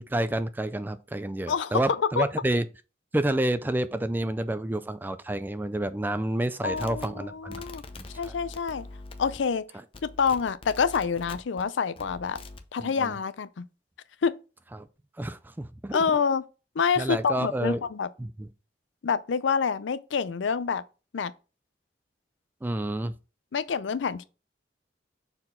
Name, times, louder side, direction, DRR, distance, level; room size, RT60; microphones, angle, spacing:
voice 1, 0.0-2.7 3.1-7.6 8.0-8.3 12.8-13.1 14.7-14.9 15.2-16.2 17.0-17.8 18.2-18.5 22.6-23.1, right 1 dB, 10° right, 0.3 m, -29 dB
voice 2, 1.5-2.3 6.6-7.8 8.1-8.9 9.2-9.7 10.0-12.4 12.7-13.6 14.2-14.4 15.9-16.4 16.8-18.1 19.0-20.8 21.1-21.3 23.5-24.2, left 6 dB, 85° left, 0.5 m, -27 dB
sound 1, 6.7-9.6 9.9-11.6 12.0-12.7, left 2 dB, 30° left, 0.6 m, -44 dB
5.9 x 4.5 x 3.7 m
head